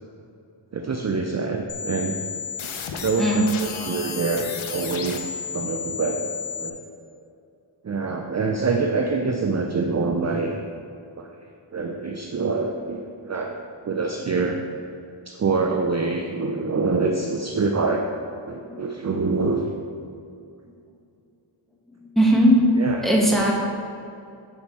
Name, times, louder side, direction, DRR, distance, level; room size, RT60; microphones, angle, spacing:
voice 1, 0.7-2.2 2.6-2.7 3.0-5.2 5.5-6.3 6.6-6.8 7.8-10.6 11.2-11.3 11.7-13.0 13.2-13.5 13.8-14.6 15.3-18.1 18.4-19.7 22.8-23.0, right 4 dB, 35° right, 2 dB, 0.5 m, -25 dB
sound 1, 1.7-6.7, left 7 dB, 90° left, 0.7 m, -32 dB
voice 2, 3.2-3.5 18.6-19.0 22.0-22.6 23.0-23.5, equal, ahead, -3 dB, 1.4 m, -19 dB
6.9 x 5.2 x 4.6 m, 2.6 s
wide cardioid pair, 65°, 47 cm